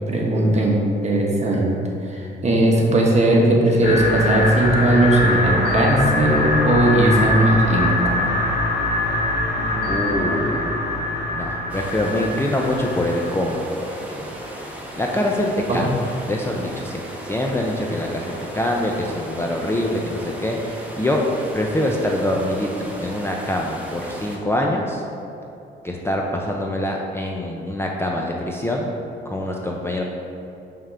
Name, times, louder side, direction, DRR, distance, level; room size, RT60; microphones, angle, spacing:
voice 1, 0.1-1.8 2.1-8.4 15.7-15.9, right 1 dB, 35° right, -2 dB, 1.2 m, -18 dB
sound 1, 3.8-13.3, left 1 dB, 55° left, 1.1 m, -23 dB
voice 2, 9.8-14.3 14.6-21.2 21.5-25.0 25.8-28.9 29.3-30.0, left 1 dB, 10° left, -1 dB, 0.6 m, -25 dB
sound 2, 11.7-24.4, equal, 5° right, 1.1 m, -36 dB
5.5 x 3.7 x 5.6 m, 2.8 s
cardioid pair, 90°, 20 cm